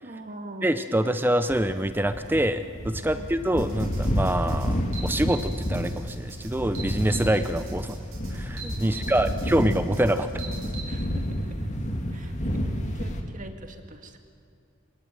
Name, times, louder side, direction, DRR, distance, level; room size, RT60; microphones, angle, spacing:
voice 1, 0.0-0.7 3.1-3.3 8.7-9.6 10.8-11.7 12.1-14.2, right 1 dB, 40° right, 6 dB, 2.1 m, -43 dB
voice 2, 0.6-8.0 8.3-10.4, right 1 dB, 10° right, 10 dB, 0.6 m, -25 dB
sound 1, 1.5-13.2, equal, 35° left, 2.4 m, -30 dB
sound 2, 3.6-10.8, right 3 dB, 75° right, 6.4 m, -42 dB
27.0 x 18.5 x 9.2 m, 2.4 s
head